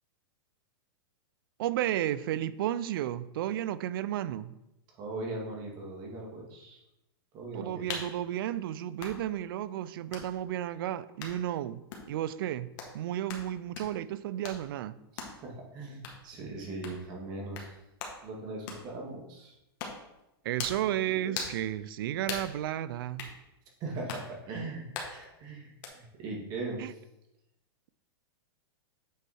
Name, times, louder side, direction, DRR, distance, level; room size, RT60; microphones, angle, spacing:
voice 1, 1.6-4.5 7.5-11.8 12.1-12.7 12.9-15.0 20.4-23.3 26.8-26.9, right 12 dB, 60° right, 16 dB, 0.4 m, -33 dB
voice 2, 4.9-6.8 7.3-7.8 15.4-17.7 18.2-19.6 21.1-21.4 23.8-24.8 25.1-27.0, right 2 dB, 30° right, -1 dB, 2.0 m, -39 dB
sound 1, 7.9-8.1 9.0-9.2 10.1-10.3 11.2-11.4 11.9-12.1 12.8-12.9 13.3-13.5 13.8-13.9 14.4-14.6 15.2-15.4 16.0-16.2 16.8-17.0 17.5-17.7 18.0-18.2 18.7-18.9 19.8-20.0 20.6-20.8 21.3-21.6 22.3-22.5 23.2-23.3 24.1-24.3 24.9-25.2 25.8-25.9, left 5 dB, 50° left, 1.6 m, -39 dB
8.3 x 4.6 x 4.3 m, 0.90 s
hypercardioid pair, 150°, 14 cm